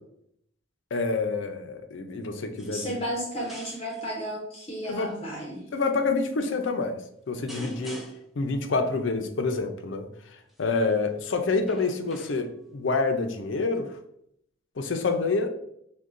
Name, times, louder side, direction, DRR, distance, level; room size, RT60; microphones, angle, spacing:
voice 1, 0.9-3.0 4.9-5.1 5.7-8.0 8.4-13.9 14.8-15.6, left 3 dB, 75° left, 7 dB, 0.5 m, -27 dB
sound 1, 2.6-3.0 3.3-4.1 4.8-5.2 6.0-6.3 7.5-8.4 10.5-10.8 11.6-12.7 13.7-13.8, equal, ahead, 0.4 m, -47 dB
voice 2, 2.7-5.7 7.6-7.9, equal, 30° left, -3 dB, 0.7 m, -33 dB
6.3 x 2.3 x 2.5 m, 0.73 s
head